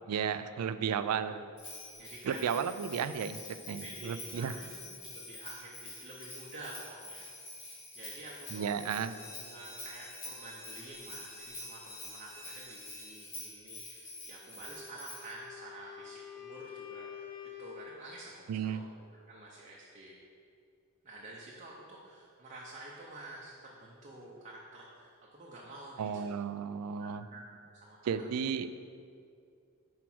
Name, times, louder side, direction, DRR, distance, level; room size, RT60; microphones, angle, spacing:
voice 1, 0.1-1.5 2.2-3.4 3.7-4.5 8.5-9.1 18.5-18.8 26.0-27.2 28.1-28.7, right 7 dB, 75° right, 12 dB, 0.3 m, -33 dB
Bell, 1.6-15.4, left 2 dB, 60° left, 1.9 m, -47 dB
voice 2, 2.0-2.5 3.6-7.2 7.9-8.7 9.2-20.2 21.0-28.4, right 2 dB, 35° right, -4 dB, 0.8 m, -49 dB
sound 1, 9.1-14.5, equal, 10° left, 1.2 m, -53 dB
Wind instrument woodwind instrument, 14.6-18.1, left 9 dB, 40° left, 0.8 m, -48 dB
6.0 x 4.7 x 6.1 m, 2.3 s
head